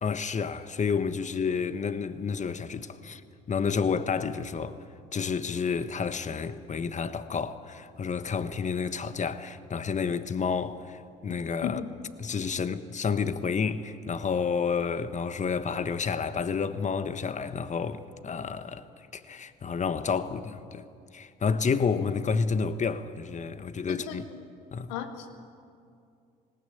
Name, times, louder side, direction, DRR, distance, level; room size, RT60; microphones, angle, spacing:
voice 1, 0.0-4.8 5.1-11.8 12.2-20.8 21.1-24.2 24.7-24.9, left 5 dB, 40° left, 1.3 m, -30 dB
voice 2, 23.9-24.4 24.9-25.4, left 8 dB, 80° left, 1.7 m, -36 dB
19.0 x 19.0 x 9.2 m
hypercardioid pair, 55°, 19 cm